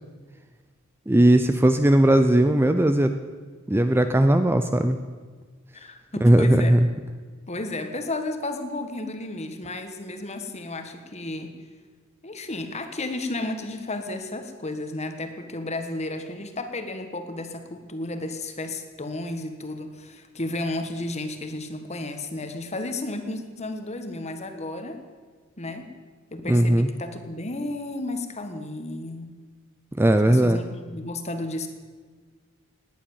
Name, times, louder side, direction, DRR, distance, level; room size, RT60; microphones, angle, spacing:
voice 1, 1.1-3.1 3.7-5.0 6.2-6.8 26.5-26.9 29.9-30.6, right 1 dB, 10° right, 8 dB, 0.5 m, -18 dB
voice 2, 5.7-6.8 7.5-11.6 12.2-25.0 25.6-25.9 26.3-29.4 30.3-31.7, left 2 dB, 30° left, 7 dB, 1.5 m, -33 dB
19.0 x 10.0 x 7.2 m, 1.5 s
head